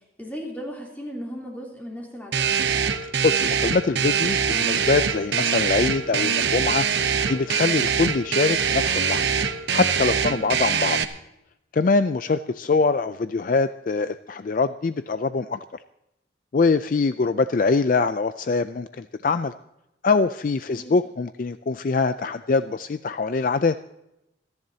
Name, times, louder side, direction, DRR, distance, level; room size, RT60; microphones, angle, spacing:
voice 1, 0.2-2.5 10.2-10.5 20.7-20.9, equal, 10° left, -2 dB, 3.2 m, -36 dB
sound 1, 2.3-11.0, right 7 dB, 75° right, 0.9 m, -23 dB
voice 2, 3.2-6.9 7.3-9.3 9.7-11.0 11.7-15.6 16.5-19.5 20.0-23.7, left 4 dB, 45° left, 11 dB, 0.4 m, -23 dB
27.5 x 10.5 x 2.8 m, 0.86 s
head